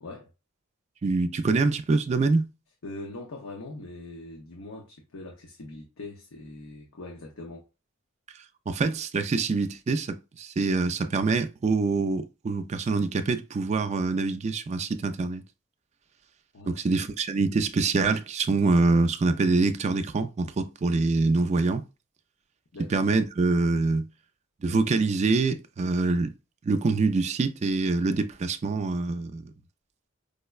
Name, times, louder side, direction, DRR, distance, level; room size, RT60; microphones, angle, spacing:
voice 1, 1.0-2.5 8.7-15.4 16.7-21.8 22.9-24.1 24.6-26.3 26.6-29.4, right 3 dB, 35° right, 0.3 m, -25 dB
voice 2, 2.8-7.6 16.5-16.8 22.7-22.9, left 2 dB, 80° left, 0.6 m, -42 dB
4.9 x 2.1 x 2.3 m
head